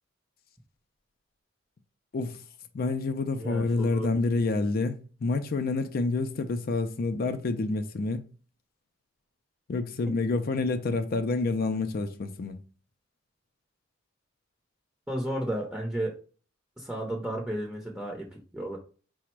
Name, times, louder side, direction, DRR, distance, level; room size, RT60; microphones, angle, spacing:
voice 1, 2.7-8.3 9.7-12.6, left 3 dB, 50° left, 0.4 m, -28 dB
voice 2, 3.4-4.1 15.1-16.1 16.8-18.8, right 1 dB, 5° right, 0.7 m, -33 dB
4.9 x 2.1 x 4.4 m
head